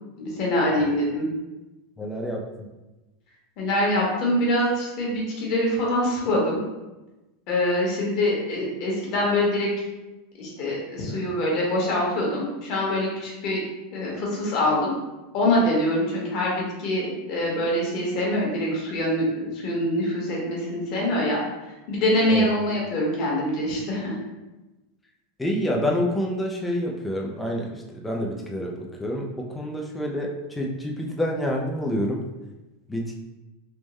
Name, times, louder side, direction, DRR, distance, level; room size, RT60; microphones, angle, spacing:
voice 1, 0.2-1.3 3.6-6.6 7.5-9.7 10.4-13.6 13.9-14.9 15.3-21.4 21.9-24.1, left 1 dB, 45° left, -3 dB, 1.1 m, -24 dB
voice 2, 2.0-2.7 22.3-22.5 25.4-32.2 32.9-33.1, equal, 5° left, -1 dB, 0.4 m, -28 dB
3.5 x 2.1 x 3.1 m, 1.1 s
supercardioid pair, 150°, 0 cm